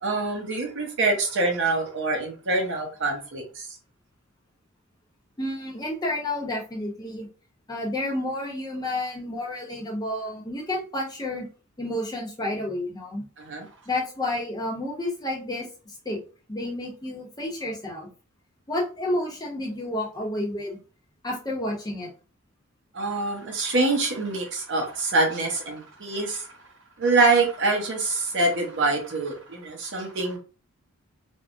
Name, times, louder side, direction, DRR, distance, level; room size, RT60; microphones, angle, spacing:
voice 1, 0.0-3.7 13.4-13.7 22.9-26.5 27.0-30.4, right 3 dB, 55° right, 0.9 m, -25 dB
voice 2, 5.4-7.3 7.7-11.5 11.8-13.2 13.9-16.2 16.5-18.1 18.7-20.8 21.2-22.1, left 1 dB, 20° left, 0.7 m, -30 dB
3.4 x 2.1 x 2.5 m
head